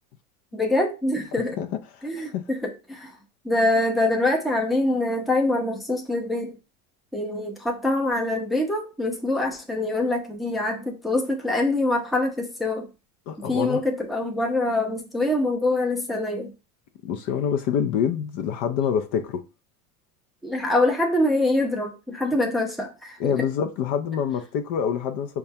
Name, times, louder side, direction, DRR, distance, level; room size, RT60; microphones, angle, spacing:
voice 1, 0.5-1.6 2.0-3.1 3.4-6.5 7.1-12.9 13.5-16.5 20.4-22.9 23.2-23.3, left 2 dB, ahead, 0.6 m, -24 dB
voice 2, 1.5-2.5 13.3-13.8 17.0-19.4 23.2-25.4, left 8 dB, 50° left, 0.5 m, -26 dB
5.4 x 2.3 x 2.7 m
hypercardioid pair, 100°, 44 cm